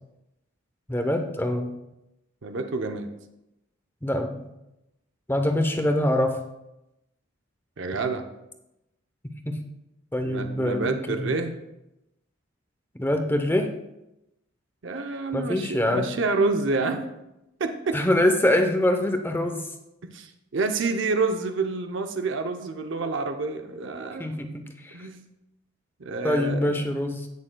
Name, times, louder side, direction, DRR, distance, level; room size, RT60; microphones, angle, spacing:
voice 1, 0.9-1.7 4.0-4.5 5.3-6.4 9.5-9.6 10.1-11.4 13.0-13.7 15.3-16.1 17.9-19.7 24.2-25.1 26.2-27.3, left 1 dB, 10° left, 6 dB, 0.7 m, -24 dB
voice 2, 2.4-3.1 7.8-8.3 10.2-11.6 14.8-17.1 17.6-18.0 20.0-24.3 24.9-25.2 26.0-26.9, right 3 dB, 60° right, 6 dB, 0.7 m, -28 dB
16.5 x 6.5 x 2.2 m, 0.91 s
head